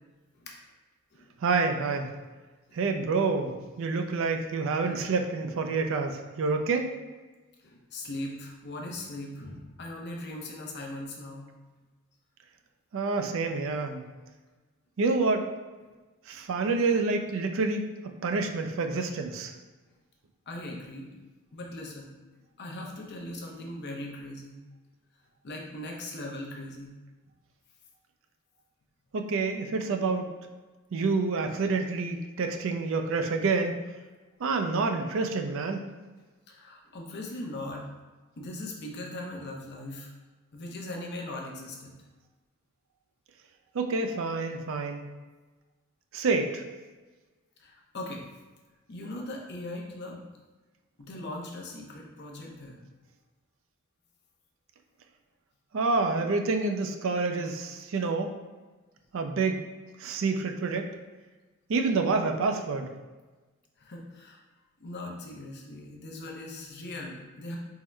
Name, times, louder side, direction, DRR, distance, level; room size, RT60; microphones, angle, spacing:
voice 1, 1.4-2.1 2.7-3.5 3.8-6.9 12.9-14.0 15.0-15.5 16.3-17.8 18.2-19.5 29.1-30.2 30.9-33.7 34.4-35.8 43.7-45.0 46.1-46.6 55.7-58.3 59.1-59.6 60.0-60.8 61.7-62.9, right 4 dB, 65° right, 5 dB, 0.4 m, -28 dB
voice 2, 7.6-11.5 20.5-21.1 21.5-22.1 22.6-24.6 25.4-26.9 36.5-37.8 38.4-40.1 40.5-42.0 47.6-48.2 48.9-50.2 51.0-52.8 63.8-64.4 64.8-67.6, left 1 dB, 50° left, 0 dB, 0.6 m, -39 dB
3.7 x 2.1 x 4.3 m, 1.3 s
head